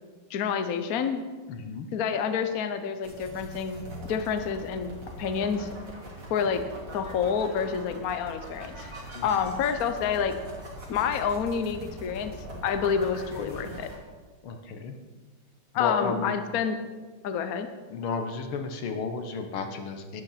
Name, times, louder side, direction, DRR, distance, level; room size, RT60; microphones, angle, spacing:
voice 1, 0.3-1.2 1.9-5.7 6.3-6.6 6.9-8.9 9.2-10.3 10.9-12.3 12.6-13.9 15.7-16.8 17.2-17.7, left 7 dB, 55° left, 8 dB, 1.1 m, -28 dB
voice 2, 1.5-1.9 9.1-9.4 14.4-15.0 15.8-16.4 17.9-20.2, left 4 dB, 85° left, 6 dB, 2.1 m, -33 dB
sound 1, 3.0-14.0, right 1 dB, 55° right, 3.8 m, -42 dB
12.0 x 9.6 x 5.8 m, 1.4 s
omnidirectional pair, 2.3 m